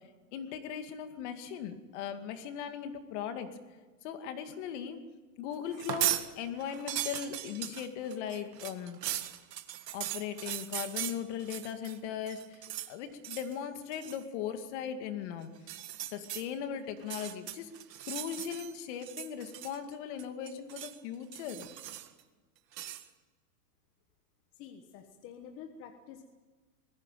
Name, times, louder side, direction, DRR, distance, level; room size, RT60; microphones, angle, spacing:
voice 1, 0.3-3.6 4.0-5.0 5.4-9.0 9.9-15.5 16.1-17.7 18.1-21.7, left 8 dB, 45° left, 8 dB, 2.2 m, -38 dB
sound 1, 5.7-6.3 6.6-12.0 12.3-12.9 13.2-13.5 13.9-14.2 15.6-16.4 17.0-18.7 19.0-19.9 20.2-21.0 21.3-22.2 22.7-23.0, right 13 dB, 80° right, 1.9 m, -38 dB
voice 2, 24.5-26.2, left 7 dB, 25° left, 5 dB, 1.3 m, -48 dB
21.0 x 15.5 x 9.2 m, 1.3 s
supercardioid pair, 160°, 48 cm